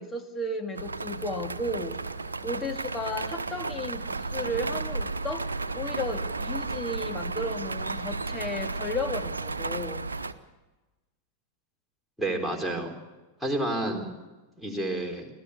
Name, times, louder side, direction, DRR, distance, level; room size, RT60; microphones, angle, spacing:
voice 1, 0.0-2.0 2.4-5.5 5.7-10.1, left 1 dB, 15° left, 5 dB, 2.3 m, -34 dB
sound 1, 0.7-10.3, right 3 dB, 75° right, 0.9 m, -33 dB
voice 2, 12.2-12.9 13.4-14.1 14.6-15.3, right 1 dB, ahead, -1 dB, 4.4 m, -29 dB
25.5 x 16.0 x 8.4 m, 1.1 s
figure-of-eight pair, 90°, 0 cm